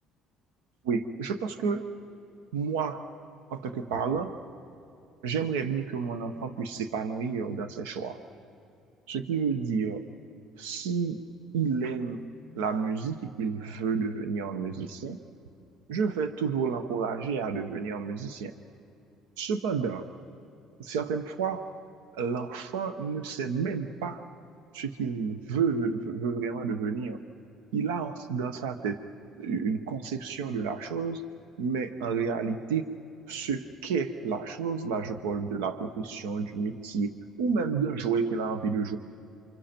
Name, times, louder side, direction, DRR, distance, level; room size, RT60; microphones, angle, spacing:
voice 1, 0.8-1.8 2.5-3.0 3.5-4.4 5.2-8.2 9.1-10.0 10.6-11.2 11.5-12.3 12.5-15.2 15.9-18.5 19.4-20.1 20.8-21.8 22.1-24.2 24.7-27.2 27.7-29.0 29.3-31.2 31.6-32.9 33.3-37.1 37.4-39.0, right 5 dB, 90° right, 9 dB, 1.0 m, -30 dB
29.0 x 25.5 x 4.4 m, 2.8 s
supercardioid pair, 80°, 0 cm